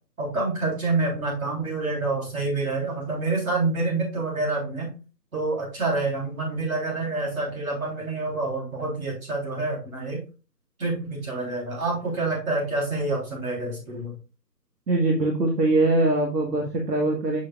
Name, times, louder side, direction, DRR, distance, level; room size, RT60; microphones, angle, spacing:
voice 1, 0.2-5.0 5.3-10.2 10.8-14.1, right 3 dB, 55° right, -2 dB, 3.4 m, -27 dB
voice 2, 14.9-17.5, right 2 dB, 70° right, 1 dB, 1.6 m, -22 dB
6.7 x 6.4 x 2.3 m, 0.33 s
hypercardioid pair, 180°, 50 cm